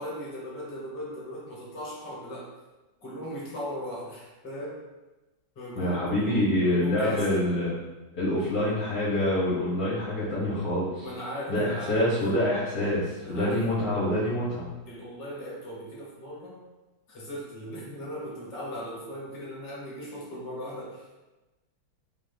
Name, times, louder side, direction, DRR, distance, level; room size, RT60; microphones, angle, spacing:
voice 1, 0.0-2.5 3.0-4.8 5.5-7.4 11.0-12.2 13.2-13.6 14.9-16.6 17.1-21.3, equal, 35° left, -5 dB, 1.1 m, -38 dB
voice 2, 5.8-7.8 8.1-11.1 11.5-14.7, left 1 dB, 55° left, -8 dB, 1.2 m, -26 dB
3.4 x 2.6 x 4.1 m, 1.1 s
omnidirectional pair, 2.2 m